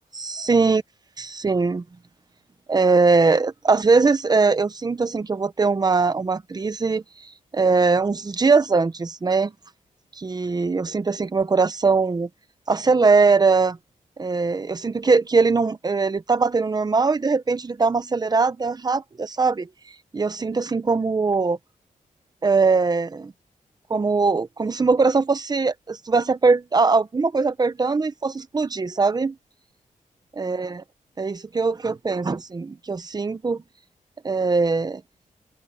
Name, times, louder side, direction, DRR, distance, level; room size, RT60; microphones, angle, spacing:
voice 1, 0.1-0.8 1.2-1.8 2.7-7.0 7.5-9.5 10.2-12.3 12.7-13.8 14.2-19.7 20.1-21.6 22.4-23.3 23.9-29.3 30.4-30.8 31.2-33.6 34.2-35.0, right 4 dB, 30° right, 1.0 m, -21 dB
wide cardioid pair, 120°, 14 cm